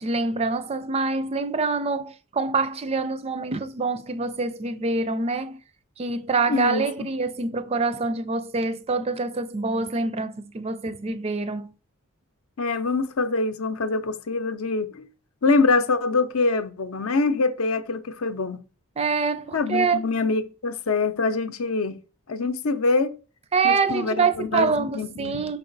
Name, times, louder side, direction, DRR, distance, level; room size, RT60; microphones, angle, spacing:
voice 1, 0.0-5.6 6.0-11.7 19.0-20.0 23.5-25.6, right 4 dB, 30° right, 0.4 m, -25 dB
voice 2, 6.5-7.1 12.6-15.1 15.4-18.6 19.5-22.0 22.3-23.1 23.6-25.4, left 3 dB, 70° left, 0.6 m, -24 dB
5.9 x 4.7 x 3.9 m
head